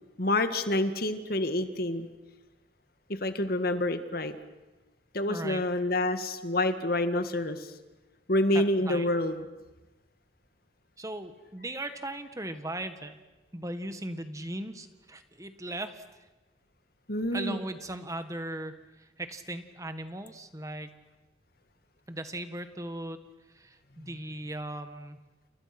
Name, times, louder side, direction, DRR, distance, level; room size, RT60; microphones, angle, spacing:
voice 1, 0.2-2.1 3.1-4.3 5.1-7.7 8.3-9.5 17.1-17.6, left 1 dB, 55° left, 9 dB, 1.9 m, -28 dB
voice 2, 5.3-5.6 8.5-9.1 11.0-13.2 13.5-16.0 17.3-21.0 22.1-23.2 23.5-25.2, right 1 dB, 20° right, 9 dB, 1.7 m, -38 dB
29.0 x 29.0 x 6.1 m, 1.1 s
head